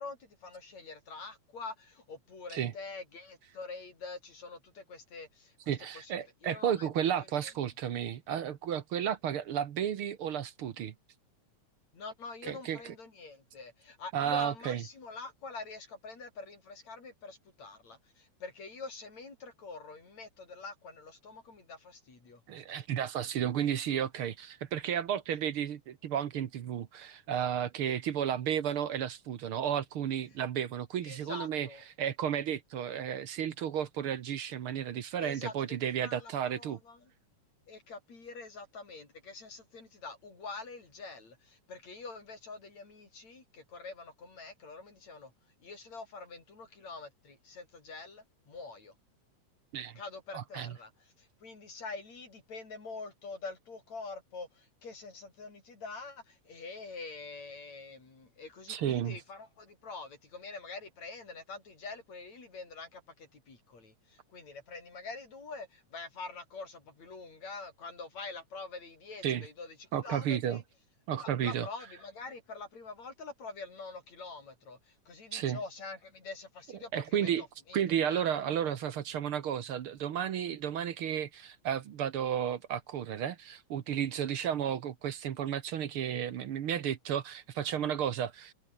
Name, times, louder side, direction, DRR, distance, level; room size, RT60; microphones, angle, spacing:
voice 1, 0.0-6.9 7.4-7.5 11.9-22.4 31.0-31.9 35.2-37.1 37.7-45.3 45.6-48.9 50.0-70.6 71.2-77.8 78.1-78.8, left 4 dB, 65° left, 7.3 m, -45 dB
voice 2, 5.7-10.9 12.4-12.9 14.1-14.8 22.5-31.7 32.0-36.8 49.7-50.0 50.3-50.7 58.7-59.2 69.2-69.5 69.9-70.6 71.1-71.7 75.3-75.6 76.9-77.4 77.7-88.5, right 9 dB, 55° right, 1.7 m, -33 dB
omnidirectional pair, 3.4 m